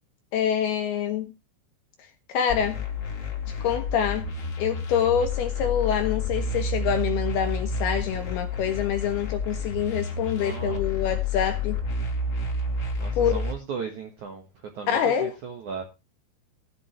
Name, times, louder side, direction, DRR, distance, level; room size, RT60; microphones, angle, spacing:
voice 1, 0.3-1.3 2.3-2.8 3.5-4.3 4.6-11.8 13.2-13.5 14.9-15.4, left 8 dB, 70° left, 2.6 m, -26 dB
sound 1, 2.5-13.5, left 2 dB, 35° left, 3.0 m, -30 dB
voice 2, 10.3-10.8 13.0-14.4 14.7-15.8, right 6 dB, 65° right, 1.9 m, -36 dB
14.5 x 11.5 x 3.2 m
omnidirectional pair, 5.7 m